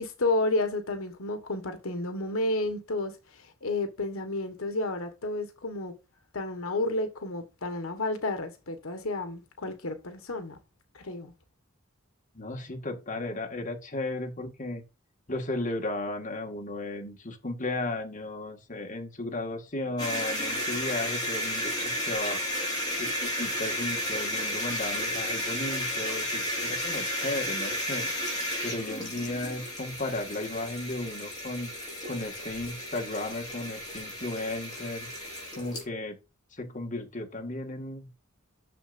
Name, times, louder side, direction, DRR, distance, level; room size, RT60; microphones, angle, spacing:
voice 1, 0.0-5.9 6.3-10.6 10.9-11.3, left 2 dB, 75° left, 1.3 m, -31 dB
voice 2, 12.4-14.8 15.3-22.4 22.9-31.7 32.1-35.1 35.6-36.2 36.5-38.1, left 2 dB, 35° left, 1.8 m, -35 dB
sound 1, 20.0-35.9, equal, 20° left, 4.5 m, -33 dB
10.0 x 6.7 x 2.6 m
head